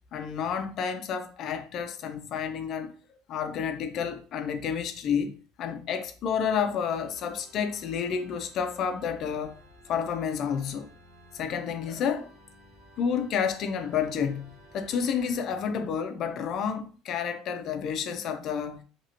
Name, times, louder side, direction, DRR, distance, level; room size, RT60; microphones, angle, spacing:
voice 1, 0.1-3.0 3.3-9.6 9.9-10.9 11.3-12.3 13.0-18.8, left 7 dB, 45° left, 0.4 m, -30 dB
Organ, 6.9-16.0, equal, 25° right, 1.6 m, -55 dB
2.9 x 2.7 x 2.8 m
cardioid pair, 145°, 0 cm